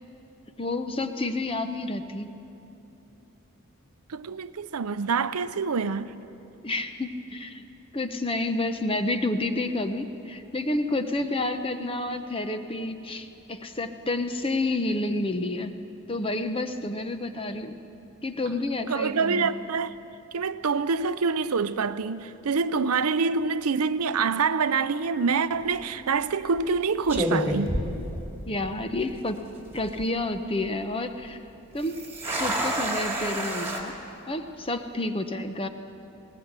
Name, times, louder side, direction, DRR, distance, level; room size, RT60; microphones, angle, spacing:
voice 1, 0.6-2.3 6.6-7.6 7.9-15.7 16.1-17.7 18.2-19.5 28.5-29.5 29.7-31.4 31.7-32.0 32.3-33.9 34.3-35.7, left 2 dB, 25° left, 0.9 m, -29 dB
voice 2, 4.1-6.1 18.9-19.9 20.3-27.8, right 5 dB, 90° right, 0.6 m, -26 dB
sound 1, 25.5-25.8 26.6-26.8 27.1-28.7 29.0-29.1 29.7-30.1 31.8-33.8, right 1 dB, 10° right, 2.3 m, -29 dB
20.5 x 19.0 x 8.2 m
head